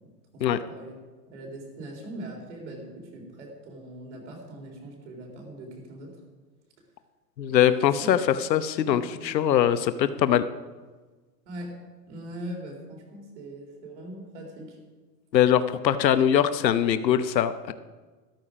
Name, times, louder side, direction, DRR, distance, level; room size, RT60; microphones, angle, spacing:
voice 1, 0.3-0.9 1.3-6.1 7.5-8.1 8.8-9.3 11.5-11.7 12.1-14.8, right 1 dB, 45° right, 1 dB, 3.8 m, -41 dB
voice 2, 7.4-10.4 15.3-17.7, left 10 dB, 85° left, 11 dB, 1.0 m, -22 dB
13.5 x 13.0 x 5.0 m, 1.3 s
hypercardioid pair, 180°, 49 cm